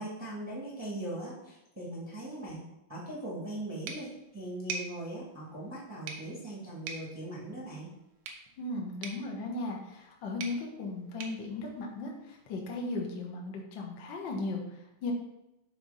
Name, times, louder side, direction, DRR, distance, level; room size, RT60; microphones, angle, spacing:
voice 1, 0.0-2.6 2.9-7.9, right 1 dB, 10° right, -5 dB, 0.8 m, -40 dB
sound 1, 3.9-12.5, right 5 dB, 90° right, 2.5 m, -46 dB
voice 2, 8.6-15.1, left 2 dB, 75° left, 0 dB, 1.0 m, -37 dB
6.7 x 3.9 x 5.5 m, 0.89 s
omnidirectional pair, 3.9 m